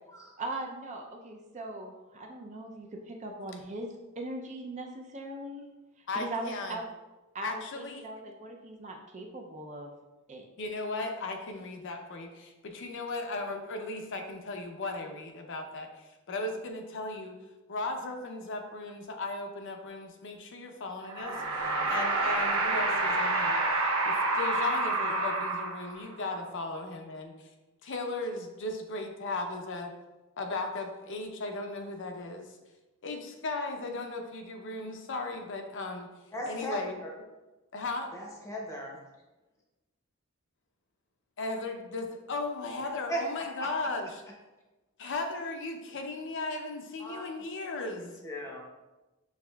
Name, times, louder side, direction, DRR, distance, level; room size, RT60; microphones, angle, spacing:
voice 1, 0.4-5.7 6.1-6.8 7.3-9.9 10.3-10.5, right 2 dB, 35° right, 2 dB, 0.5 m, -40 dB
voice 2, 6.1-6.8 7.4-8.1 10.6-17.4 17.7-23.6 24.0-27.3 27.8-29.9 30.4-32.6 33.0-36.1 36.5-37.0 37.7-38.1 41.4-44.2 45.0-48.1, left 2 dB, 60° left, 4 dB, 0.6 m, -36 dB
sound 1, 21.0-26.1, right 2 dB, 75° right, 0.8 m, -28 dB
voice 3, 36.3-36.8 38.1-39.0 43.1-43.2 43.6-43.7 47.0-47.2 48.0-48.6, right 1 dB, 15° left, -1 dB, 0.7 m, -37 dB
6.4 x 3.4 x 2.3 m, 1.1 s
head